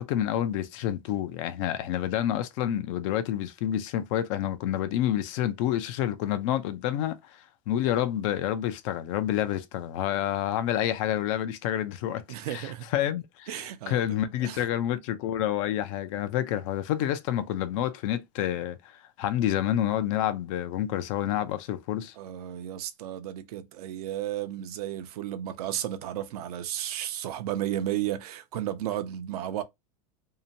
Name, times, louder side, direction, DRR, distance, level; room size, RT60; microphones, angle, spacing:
voice 1, 0.0-22.1, left 11 dB, 55° left, 0.5 m, -29 dB
voice 2, 12.3-12.9 13.5-14.1 14.4-14.7 22.2-29.6, right 12 dB, 75° right, 0.6 m, -33 dB
2.7 x 2.2 x 2.7 m
supercardioid pair, 140°, 20 cm